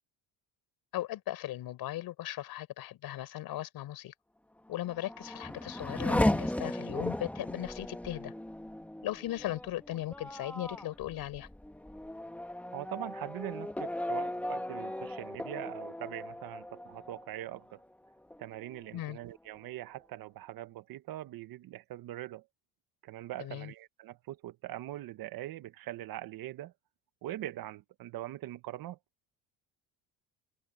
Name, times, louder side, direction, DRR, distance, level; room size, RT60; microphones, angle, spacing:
voice 1, 0.9-4.1 4.7-8.3 9.0-11.5 18.9-19.2 23.4-23.7, left 14 dB, 70° left, 5.1 m, -38 dB
Race car auto racing / Accelerating revving vroom, 4.7-17.9 18.3-19.0, left 1 dB, 5° left, 1.4 m, -36 dB
voice 2, 12.7-17.8 18.4-22.4 23.0-26.7 27.2-29.0, right 14 dB, 65° right, 1.4 m, -42 dB
cardioid pair, 115°, 38 cm